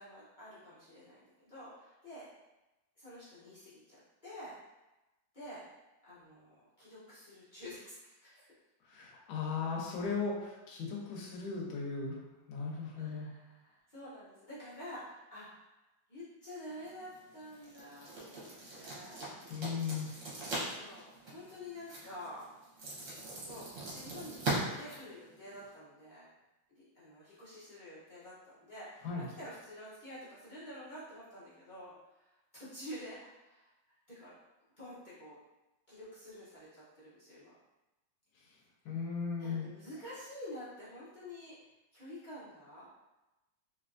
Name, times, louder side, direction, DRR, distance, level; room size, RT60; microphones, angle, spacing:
voice 1, 0.0-2.3 3.0-4.5 5.3-5.6 6.0-8.5 13.0-15.7 16.1-18.5 18.7-19.3 20.6-22.5 23.4-26.3 26.7-33.7 34.1-34.3 34.8-35.4 35.9-37.5 39.4-41.5 41.9-42.9, left 1 dB, 55° left, -11 dB, 0.5 m, -49 dB
voice 2, 8.9-12.2 12.5-13.3 19.5-20.1 29.0-29.2 38.8-39.7, left 5 dB, 80° left, -1 dB, 1.4 m, -37 dB
sound 1, 16.7-25.7, right 2 dB, 45° right, 1.2 m, -42 dB
3.3 x 2.9 x 2.5 m, 1.0 s
omnidirectional pair, 2.2 m